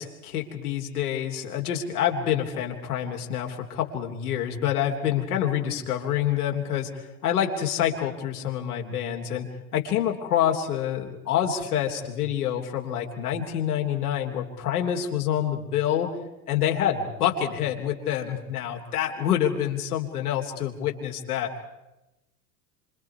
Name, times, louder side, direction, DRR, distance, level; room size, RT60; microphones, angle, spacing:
voice 1, 0.0-6.9 7.2-9.5 9.7-16.1 16.5-21.5, left 10 dB, 75° left, 2 dB, 3.5 m, -27 dB
27.5 x 26.0 x 4.7 m, 0.97 s
hypercardioid pair, 85°, 45 cm